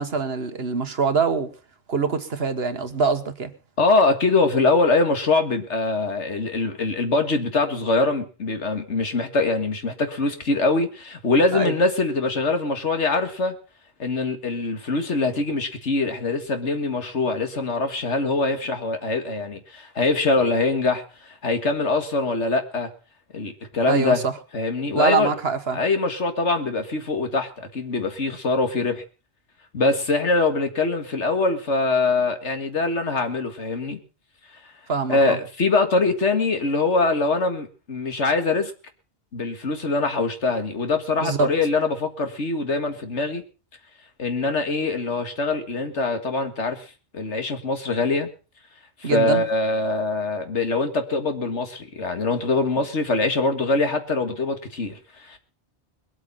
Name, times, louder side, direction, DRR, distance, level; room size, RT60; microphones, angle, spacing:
voice 1, 0.0-1.5 1.9-3.5 11.5-11.7 23.9-24.3 25.0-25.8 34.9-35.4 41.2-41.5 49.0-49.4, right 5 dB, 65° right, 1.6 m, -24 dB
voice 2, 3.8-13.5 14.0-21.0 21.3-22.9 23.3-24.3 24.5-25.3 25.7-29.0 29.7-34.0 35.1-38.7 39.3-43.4 44.2-46.9 47.1-48.3 49.0-55.4, left 3 dB, 90° left, 2.2 m, -23 dB
21.5 x 8.4 x 5.6 m
omnidirectional pair, 1.1 m